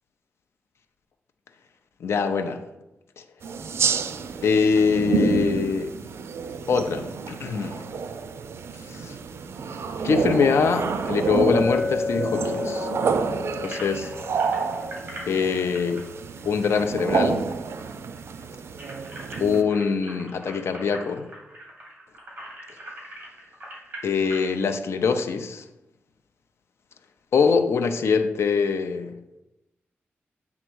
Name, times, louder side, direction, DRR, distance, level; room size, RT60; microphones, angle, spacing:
voice 1, 2.0-2.6 4.4-5.9 6.7-7.8 8.9-9.2 10.0-12.9 13.6-14.1 15.3-16.0 16.4-17.5 19.4-21.3 24.0-25.6 27.3-29.2, left 5 dB, 75° left, 6 dB, 0.6 m, -23 dB
sound 1, 3.4-19.6, right 5 dB, 75° right, 0.5 m, -29 dB
Chink clink, 11.5-16.0, left 4 dB, 35° left, 0.8 m, -32 dB
sound 2, 13.6-17.5 17.8-17.9 18.2-24.5, right 1 dB, 40° right, 2.6 m, -42 dB
8.1 x 3.6 x 6.2 m, 0.96 s
wide cardioid pair, 100°, 4 cm